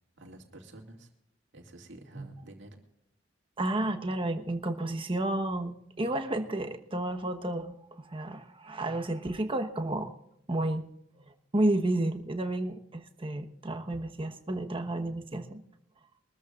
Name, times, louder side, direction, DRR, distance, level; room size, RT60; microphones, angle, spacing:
voice 1, 0.2-1.1 1.5-2.8, right 1 dB, 70° right, 2 dB, 2.5 m, -49 dB
voice 2, 3.6-10.1 10.5-10.8 11.5-15.6, right 1 dB, 30° right, 6 dB, 1.2 m, -31 dB
23.0 x 13.5 x 2.5 m, 0.79 s
head